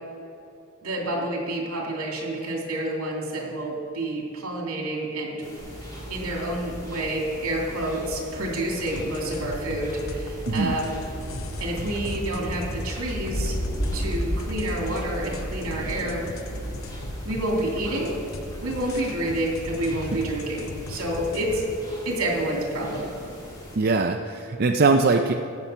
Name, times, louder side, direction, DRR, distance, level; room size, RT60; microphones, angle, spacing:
voice 1, 0.8-5.4 6.1-10.9 11.6-13.6 13.9-16.2 17.2-18.1 18.6-21.6 22.0-23.2, right 1 dB, 80° right, -1 dB, 2.6 m, -28 dB
sound 1, 5.4-23.8, equal, 20° left, 2.4 m, -43 dB
Thunder, 5.6-23.6, equal, 55° left, 2.8 m, -36 dB
sound 2, 8.7-21.8, left 2 dB, 70° left, 0.7 m, -39 dB
voice 2, 10.5-10.8 23.8-25.3, right 3 dB, 45° right, 4 dB, 0.4 m, -21 dB
14.5 x 7.2 x 5.5 m, 2.7 s
head